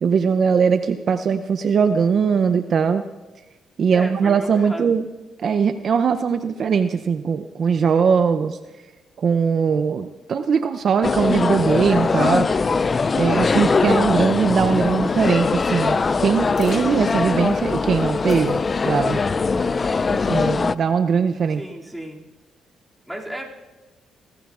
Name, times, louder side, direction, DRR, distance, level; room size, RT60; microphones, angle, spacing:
voice 1, 0.0-3.0 3.8-5.0 5.4-8.6 9.2-12.5 13.1-19.2 20.1-21.6, right 6 dB, 55° right, 10 dB, 0.5 m, -20 dB
voice 2, 3.9-4.9 21.5-22.2 23.1-23.5, right 1 dB, ahead, -2 dB, 2.4 m, -34 dB
sound 1, 11.0-20.8, left 4 dB, 35° left, 0.3 m, -21 dB
sound 2, 16.6-16.8 17.6-17.7 18.3-19.0 20.0-20.4, left 3 dB, 50° left, 4.5 m, -43 dB
23.0 x 14.5 x 2.4 m, 1.2 s
cardioid pair, 90°, 0 cm